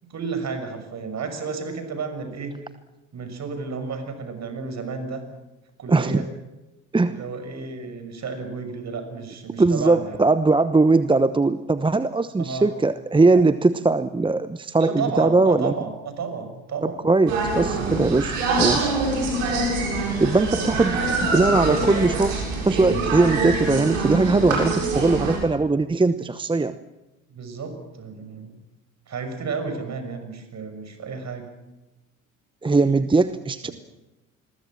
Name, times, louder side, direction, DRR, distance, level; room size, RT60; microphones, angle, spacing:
voice 1, 0.0-2.5 3.1-5.2 5.8-6.3 7.1-10.2 12.4-12.7 14.8-17.0 18.8-19.1 20.5-22.1 27.3-28.5 29.1-31.5, right 5 dB, 45° right, 8 dB, 6.3 m, -32 dB
voice 2, 5.9-6.2 6.9-7.2 9.6-15.7 16.8-18.9 20.2-21.0 21.3-22.4 22.6-26.8 32.6-33.7, right 3 dB, 10° right, 13 dB, 0.9 m, -20 dB
sound 1, 17.3-25.4, right 3 dB, 75° right, 7.6 m, -24 dB
27.0 x 21.5 x 7.5 m, 1.0 s
hypercardioid pair, 60°, 39 cm